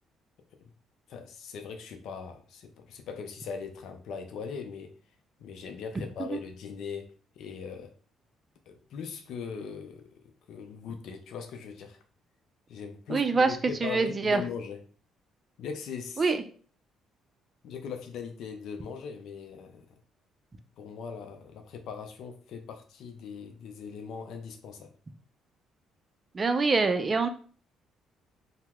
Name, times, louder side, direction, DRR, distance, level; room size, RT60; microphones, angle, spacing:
voice 1, 1.1-4.9 5.4-7.1 7.4-7.9 8.7-12.0 12.7-14.8 15.6-16.2 17.6-19.9 20.8-24.9, left 6 dB, 70° left, 5 dB, 0.5 m, -40 dB
voice 2, 13.1-14.4 16.2-16.4 26.3-27.3, right 4 dB, 35° right, 8 dB, 0.4 m, -25 dB
2.8 x 2.1 x 3.5 m, 0.42 s
supercardioid pair, 75°, 0 cm